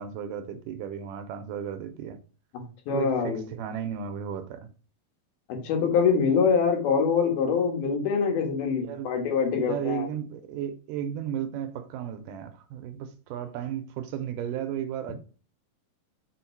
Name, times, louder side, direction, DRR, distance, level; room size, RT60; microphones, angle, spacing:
voice 1, 0.0-2.2 2.9-4.7 8.8-9.1 9.5-15.2, right 9 dB, 75° right, 2.1 m, -34 dB
voice 2, 2.5-3.4 5.5-10.1, left 6 dB, 90° left, 3.4 m, -24 dB
6.3 x 4.4 x 4.5 m
omnidirectional pair, 4.2 m